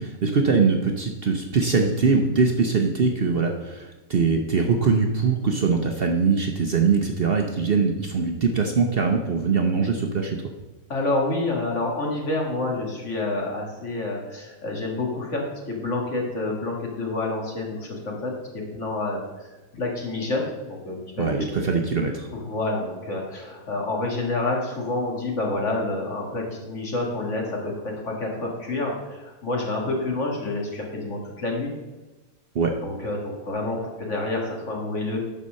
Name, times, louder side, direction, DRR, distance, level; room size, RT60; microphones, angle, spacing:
voice 1, 0.0-10.4 21.2-22.3 32.5-32.7, right 5 dB, 50° right, 3 dB, 0.8 m, -22 dB
voice 2, 10.9-21.4 22.3-31.7 32.8-35.2, left 2 dB, 55° left, -1 dB, 2.1 m, -28 dB
11.0 x 4.1 x 6.4 m, 1.1 s
omnidirectional pair, 1.5 m